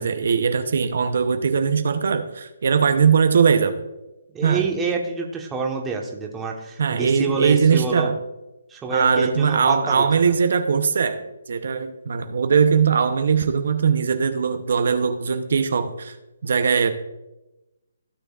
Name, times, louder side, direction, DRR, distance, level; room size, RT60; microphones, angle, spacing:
voice 1, 0.0-3.8 4.4-4.7 6.8-8.2 8.9-11.2 11.5-16.2 16.4-16.9, right 6 dB, 65° right, 8 dB, 0.7 m, -20 dB
voice 2, 4.3-8.1 8.7-10.0, right 4 dB, 10° right, 1 dB, 1.2 m, -27 dB
15.5 x 6.6 x 2.5 m, 1.0 s
hypercardioid pair, 150°, 0 cm